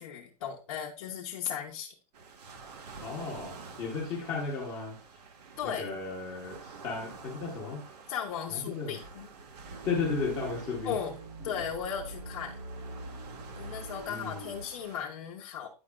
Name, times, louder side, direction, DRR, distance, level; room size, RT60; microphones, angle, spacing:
voice 1, 0.0-1.9 5.6-5.9 8.1-9.3 10.8-11.2 11.4-12.5 13.5-15.7, left 8 dB, 50° left, -2 dB, 0.9 m, -36 dB
sound 1, 2.1-15.0, right 5 dB, 85° right, 1.4 m, -49 dB
voice 2, 3.0-5.0 5.6-7.9 8.5-8.9 9.8-11.0 11.4-11.5 14.1-14.5, left 4 dB, 15° left, -2 dB, 1.0 m, -34 dB
sound 2, 9.4-14.7, right 2 dB, 60° right, 1.3 m, -44 dB
9.7 x 4.8 x 2.2 m, 0.36 s
supercardioid pair, 175°, 20 cm